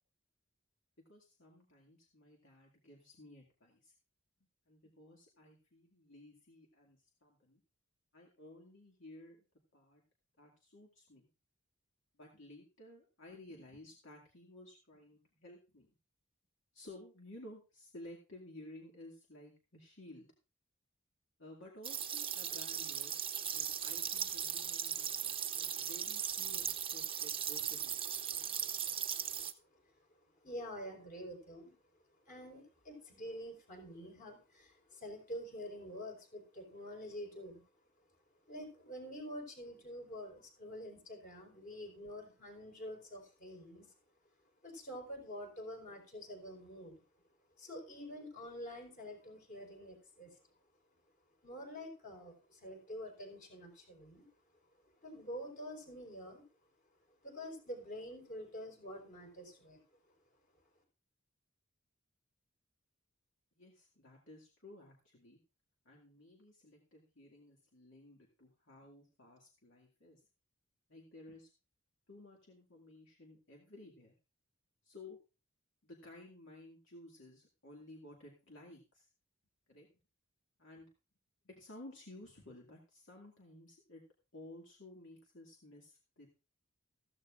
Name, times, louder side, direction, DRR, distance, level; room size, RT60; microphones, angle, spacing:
voice 1, 1.1-3.9 4.7-7.6 8.1-9.5 9.7-10.0 10.4-11.3 12.1-15.9 16.7-20.3 21.4-23.1 23.5-28.0 28.3-28.5 63.6-65.4 65.8-70.3 70.9-71.5 72.1-74.1 74.8-75.2 75.8-79.1 79.7-79.9 80.6-80.9 81.4-84.0 84.3-86.3, left 1 dB, 65° left, -1 dB, 2.3 m, -55 dB
sound 1, 21.8-29.5, right 9 dB, 25° right, 0.9 m, -38 dB
voice 2, 30.4-31.7 32.3-37.6 38.4-43.9 44.6-47.0 47.6-50.4 51.4-54.2 55.0-56.5 57.2-59.8, equal, 40° left, 2 dB, 4.6 m, -47 dB
15.0 x 14.5 x 2.5 m, 0.32 s
head